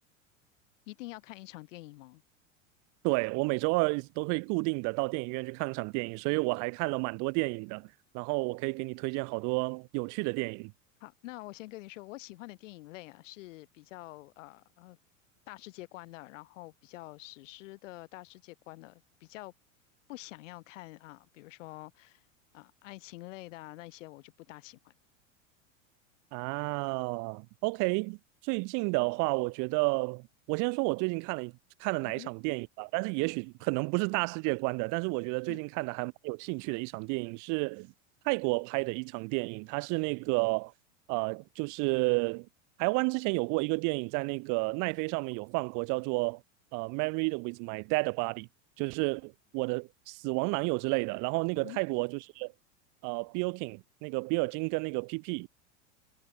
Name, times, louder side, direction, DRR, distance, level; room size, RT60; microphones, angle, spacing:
voice 1, 0.9-2.2 11.0-15.0 15.5-19.5 20.1-22.2 22.5-24.9 32.0-32.3 35.5-35.6 51.5-51.8, left 19 dB, 70° left, 3.0 m, -47 dB
voice 2, 3.0-7.9 8.1-10.7 26.3-28.2 28.4-31.5 31.8-37.9 38.2-40.7 41.1-42.5 42.8-46.4 46.7-48.5 48.8-52.5 53.0-55.5, right 32 dB, 50° right, 0.8 m, -31 dB
hypercardioid pair, 100°, 39 cm